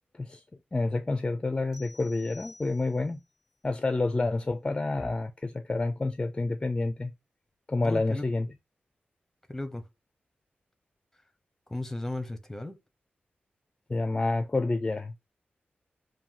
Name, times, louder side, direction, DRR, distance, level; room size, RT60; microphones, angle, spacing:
voice 1, 0.7-3.2 3.6-7.1 7.7-8.5 13.9-15.1, left 2 dB, 25° left, 0.5 m, -28 dB
sound 1, 1.7-3.3, left 3 dB, 15° right, 1.3 m, -52 dB
voice 2, 7.8-8.3 9.5-9.8 11.7-12.8, left 2 dB, 5° left, 0.9 m, -35 dB
7.1 x 2.7 x 5.7 m
wide cardioid pair, 130°, 4 cm